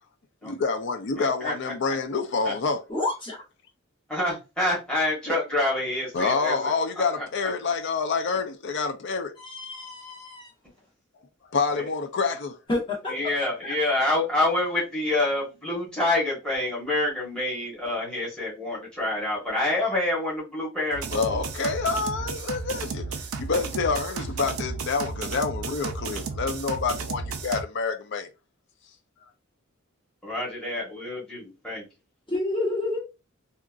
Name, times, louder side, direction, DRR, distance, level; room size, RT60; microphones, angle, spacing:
voice 1, 0.4-2.8 6.1-9.3 11.5-12.6 21.1-28.3, left 4 dB, 55° left, 0.5 m, -27 dB
voice 2, 1.2-1.5 2.4-2.5 4.1-6.7 7.2-7.3 11.7-11.8 13.1-21.4 30.2-31.8, left 1 dB, 5° left, 1.2 m, -27 dB
voice 3, 2.9-3.4 9.4-10.5 12.7-13.2 13.6-13.7 32.3-33.0, left 2 dB, 25° left, 1.2 m, -29 dB
sound 1, 20.9-27.6, right 4 dB, 80° right, 0.5 m, -33 dB
2.8 x 2.4 x 2.4 m
head